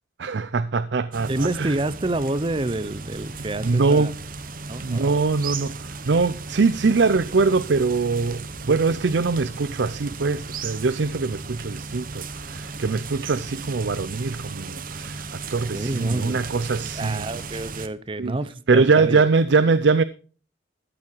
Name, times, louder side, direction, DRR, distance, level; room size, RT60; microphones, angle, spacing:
voice 1, 0.2-1.7 3.6-4.1 4.8-15.2 15.5-17.2 18.2-18.4 18.7-20.0, right 4 dB, 70° right, 0.5 m, -22 dB
sound 1, 1.1-17.9, right 4 dB, 50° right, 1.0 m, -35 dB
voice 2, 1.3-4.1 4.7-5.2 15.7-19.2, right 2 dB, 30° right, 0.6 m, -28 dB
13.5 x 8.5 x 4.6 m
head